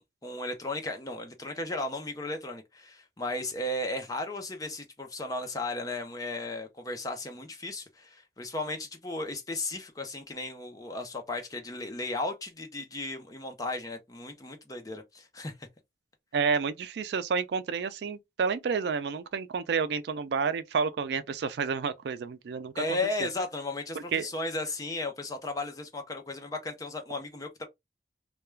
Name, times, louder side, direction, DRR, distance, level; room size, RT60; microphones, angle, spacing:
voice 1, 0.0-15.7 22.8-27.7, left 2 dB, 20° left, 0.5 m, -35 dB
voice 2, 16.3-22.8 23.2-23.3 23.9-24.3, right 5 dB, 70° right, 0.3 m, -30 dB
2.3 x 2.2 x 3.0 m
head